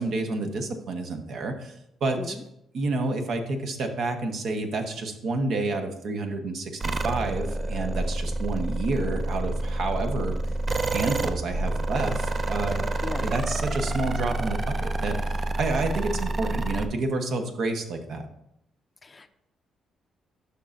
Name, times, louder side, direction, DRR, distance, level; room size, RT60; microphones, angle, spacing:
voice 1, 0.0-1.7 2.0-2.4 2.7-10.4 10.9-12.9 13.2-15.2 15.6-18.3, right 3 dB, 65° right, 5 dB, 1.0 m, -29 dB
sound 1, 6.8-16.9, right 2 dB, 35° right, 0.5 m, -28 dB
voice 2, 13.0-13.3 19.0-19.3, left 3 dB, 30° left, 10 dB, 0.5 m, -37 dB
11.5 x 5.4 x 2.5 m, 0.81 s
cardioid pair, 90°, 0 cm